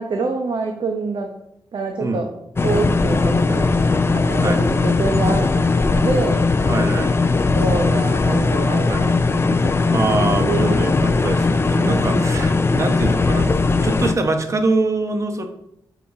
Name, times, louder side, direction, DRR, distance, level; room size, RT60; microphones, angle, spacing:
voice 1, 0.0-1.3 1.7-2.3 2.6-3.6 4.1-6.5 7.5-9.7 10.4-10.5 10.7-10.9 11.8-12.3, right 3 dB, 65° right, 3 dB, 0.9 m, -26 dB
sound 1, 2.6-14.1, left 3 dB, 30° left, 0.5 m, -18 dB
voice 2, 6.6-7.1 8.9-9.1 9.9-13.5 13.8-15.5, right 3 dB, 35° right, 6 dB, 1.0 m, -23 dB
7.8 x 4.9 x 4.9 m, 0.76 s
wide cardioid pair, 110°, 9 cm